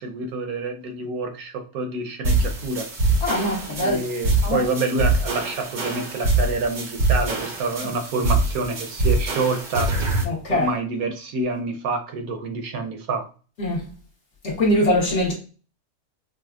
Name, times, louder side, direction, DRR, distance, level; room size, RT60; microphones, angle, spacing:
voice 1, 0.0-2.9 3.8-9.9 10.5-13.2, right 3 dB, 75° right, 1.0 m, -27 dB
sound 1, 2.2-10.2, right 2 dB, 50° right, 0.5 m, -24 dB
voice 2, 3.2-4.0 4.4-4.6 10.2-10.7 13.6-13.8 14.4-15.3, left 1 dB, 55° left, 1.0 m, -22 dB
4.9 x 2.0 x 2.3 m
omnidirectional pair, 1.7 m